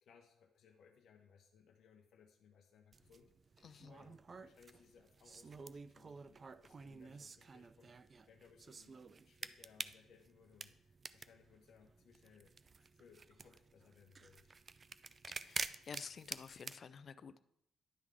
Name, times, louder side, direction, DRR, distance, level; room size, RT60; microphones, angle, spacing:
voice 1, 0.0-14.5, left 6 dB, 65° left, 0.7 m, -66 dB
sound 1, 2.9-16.8, right 4 dB, 35° right, 0.3 m, -50 dB
voice 2, 3.6-3.9 15.3-17.4, left 6 dB, 50° left, 0.4 m, -51 dB
10.5 x 3.7 x 4.7 m
cardioid pair, 90°, 0 cm